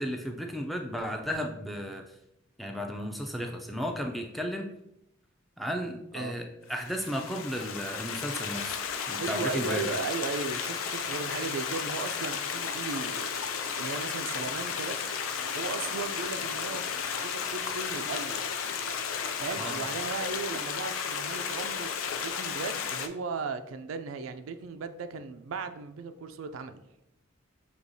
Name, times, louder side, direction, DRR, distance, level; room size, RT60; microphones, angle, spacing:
voice 1, 0.0-2.1 2.6-4.7 5.6-8.8 9.1-9.9 19.6-19.8, equal, ahead, 0.4 m, -34 dB
Stream, 6.8-23.1, left 7 dB, 90° left, 0.4 m, -34 dB
voice 2, 9.2-15.0 15.5-16.8 17.2-18.7 19.4-26.8, right 4 dB, 80° right, 0.4 m, -36 dB
Domestic sounds home sounds, 9.5-20.7 22.8-23.0 23.3-23.4, left 2 dB, 25° left, 0.8 m, -48 dB
6.3 x 2.9 x 2.7 m
head